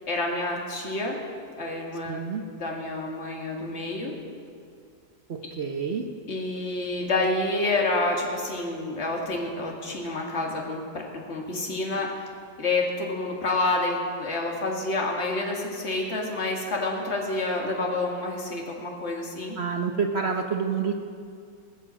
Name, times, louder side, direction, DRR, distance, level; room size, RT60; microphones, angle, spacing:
voice 1, 0.1-1.2 1.6-2.2 2.6-4.2 6.3-12.3 12.6-19.6, left 2 dB, 40° left, 0 dB, 2.1 m, -28 dB
voice 2, 2.1-2.4 5.3-6.0 19.6-20.9, right 6 dB, 50° right, 3 dB, 0.9 m, -28 dB
19.5 x 7.0 x 7.4 m, 2.3 s
omnidirectional pair, 1.8 m